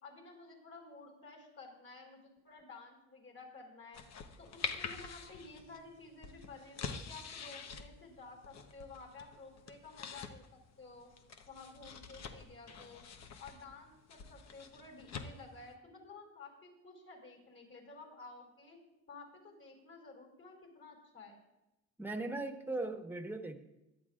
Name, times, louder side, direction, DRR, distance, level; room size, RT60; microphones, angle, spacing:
voice 1, 0.0-4.0 4.4-11.1 11.5-13.0 13.4-18.8 19.1-21.4, left 3 dB, 45° left, 1 dB, 4.4 m, -53 dB
sound 1, 3.9-15.7, left 6 dB, 60° left, 1.1 m, -47 dB
voice 2, 22.0-23.6, right 2 dB, 5° right, 5 dB, 1.3 m, -38 dB
17.0 x 11.5 x 2.5 m, 0.97 s
cardioid pair, 90°, 30 cm